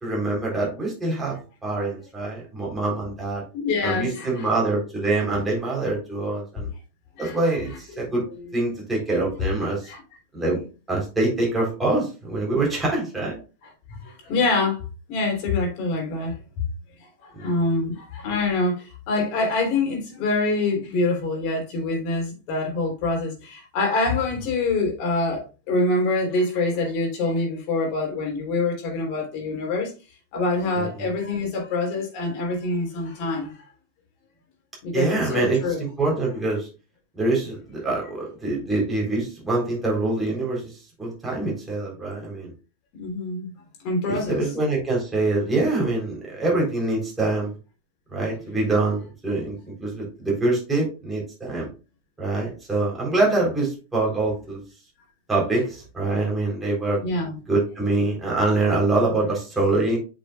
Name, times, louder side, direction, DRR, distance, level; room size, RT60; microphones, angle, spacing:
voice 1, 0.0-3.4 3.8-6.7 7.2-8.2 8.5-9.9 10.3-13.4 17.3-17.5 30.8-31.1 34.9-36.7 37.1-40.7 41.0-42.5 44.1-47.5 48.1-51.7 52.2-54.6 55.3-57.0 57.5-60.0, right 2 dB, 10° right, 3.8 m, -25 dB
voice 2, 3.5-4.5 7.2-7.4 7.7-7.8 8.4-8.5 9.8-10.0 13.9-14.8 15.1-16.3 17.2-29.9 30.3-33.5 34.8-35.8 43.0-43.5 43.8-44.4 57.0-57.4, left 3 dB, 45° left, 3.4 m, -25 dB
8.2 x 6.1 x 2.4 m
figure-of-eight pair, 90°, 0 cm